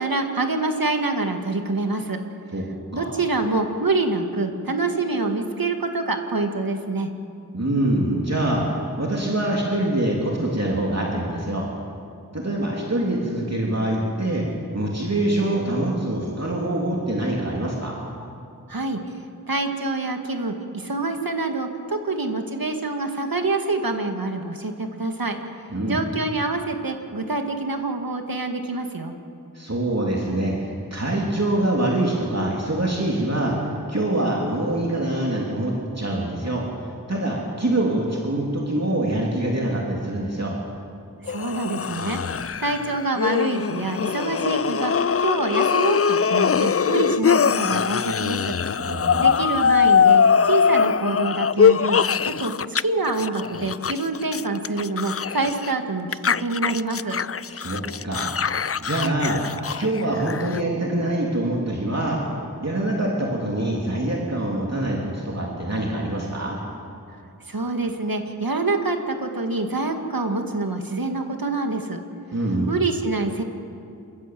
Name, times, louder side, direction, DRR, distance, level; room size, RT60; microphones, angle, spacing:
voice 1, 0.0-2.2 2.9-7.1 18.7-19.0 19.5-25.4 25.8-29.1 41.2-42.2 42.6-48.6 49.2-52.5 52.8-57.2 67.5-72.0 72.7-73.4, right 3 dB, 70° right, 5 dB, 2.0 m, -26 dB
voice 2, 7.5-11.7 12.3-14.5 14.7-18.0 25.7-26.1 29.5-36.7 37.1-40.6 48.8-49.4 57.5-58.3 58.8-59.4 59.8-62.2 62.6-66.6 72.3-72.7, right 1 dB, 45° right, -3 dB, 3.2 m, -25 dB
sound 1, 41.3-52.8 53.1-55.7 56.1-60.6, left 6 dB, 40° left, 0.4 m, -22 dB
27.5 x 15.0 x 7.8 m, 2.5 s
wide cardioid pair, 45°, 36 cm